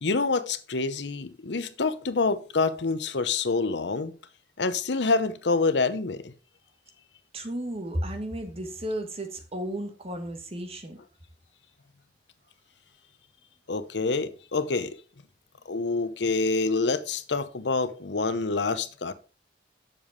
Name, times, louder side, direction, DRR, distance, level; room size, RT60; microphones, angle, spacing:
voice 1, 0.0-4.1 4.6-6.3 13.7-15.0 15.7-19.1, left 3 dB, 80° left, 0.8 m, -27 dB
voice 2, 7.3-11.0, right 1 dB, 35° right, 1.6 m, -33 dB
7.3 x 7.0 x 4.7 m
head